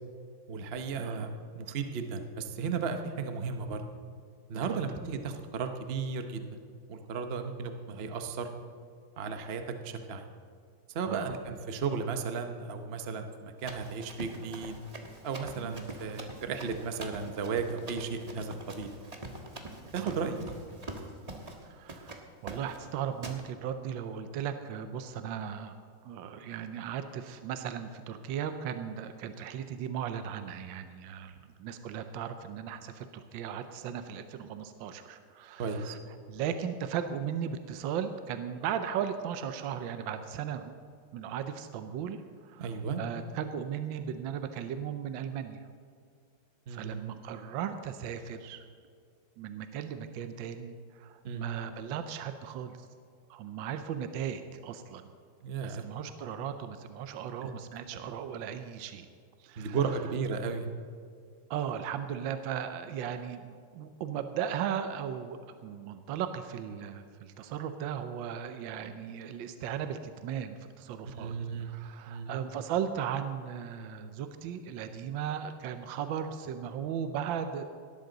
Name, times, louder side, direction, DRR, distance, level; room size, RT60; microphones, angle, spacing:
voice 1, 0.5-3.8 4.5-6.4 6.9-8.5 9.2-10.2 10.9-14.8 15.2-18.9 19.9-20.6 35.6-35.9 42.6-43.0 46.7-47.0 51.2-51.4 55.4-55.8 57.4-57.5 59.6-60.7 71.1-71.7 72.1-72.3, right 5 dB, 55° right, 6 dB, 0.7 m, -34 dB
voice 2, 11.1-11.4 15.6-15.7 20.0-20.1 21.6-25.8 26.0-36.0 36.3-40.7 41.1-42.7 43.0-45.6 46.7-48.6 49.4-52.9 53.3-55.1 55.6-59.1 59.4-59.8 61.5-71.3 71.6-77.6, right 8 dB, 70° right, 9 dB, 1.3 m, -37 dB
Run, 13.6-21.6 21.9-22.2 22.5-22.8 23.2-23.4, right 2 dB, 25° right, 1.0 m, -44 dB
18.0 x 12.5 x 3.9 m, 2.2 s
omnidirectional pair, 2.3 m